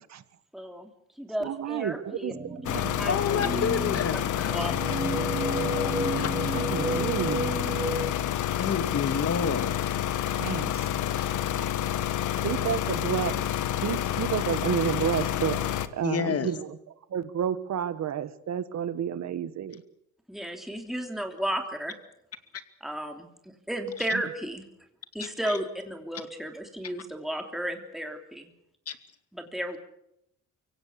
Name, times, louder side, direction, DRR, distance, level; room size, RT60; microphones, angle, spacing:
voice 1, 0.5-0.9 1.2-2.3 2.7-3.6 4.5-4.7 20.3-21.9 22.8-24.6 25.1-28.5 29.3-29.8, right 1 dB, ahead, 4 dB, 3.1 m, -33 dB
voice 2, 1.4-2.9 6.5-7.6 10.4-10.8 12.4-13.4 13.8-15.6 15.9-16.8 17.1-19.8 24.1-24.2, right 9 dB, 65° right, 14 dB, 1.6 m, -30 dB
sound 1, 2.3-8.1, right 2 dB, 20° right, 2.6 m, -32 dB
sound 2, 2.7-15.9, left 11 dB, 80° left, 1.3 m, -29 dB
voice 3, 3.0-4.9 5.2-5.9 6.2-6.6 8.6-9.8 11.2-11.3 16.0-16.5 28.9-29.0, left 6 dB, 50° left, 9 dB, 2.5 m, -30 dB
24.0 x 17.0 x 8.4 m, 0.81 s
cardioid pair, 90°, 30 cm